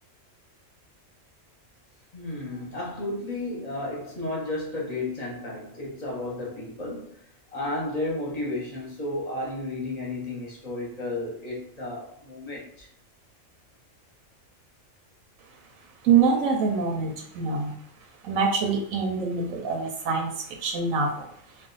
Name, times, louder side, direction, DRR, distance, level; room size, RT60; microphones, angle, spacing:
voice 1, 2.1-7.2 7.5-12.9, left 2 dB, 35° left, 0.8 m, -33 dB
voice 2, 16.0-17.7 18.2-21.3, right 5 dB, 85° right, 1.0 m, -25 dB
2.4 x 2.3 x 3.8 m
omnidirectional pair, 1.4 m